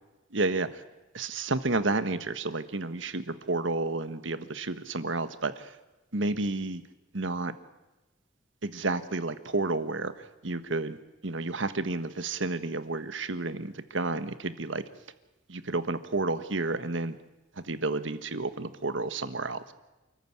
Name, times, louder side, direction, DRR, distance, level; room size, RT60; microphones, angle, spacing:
voice 1, 0.3-0.8 1.1-5.7 6.1-6.8 7.1-7.5 8.6-11.0 11.2-14.8 15.5-17.2 17.6-19.7, right 2 dB, 70° right, 11 dB, 1.5 m, -31 dB
28.5 x 14.5 x 9.7 m, 1.1 s
head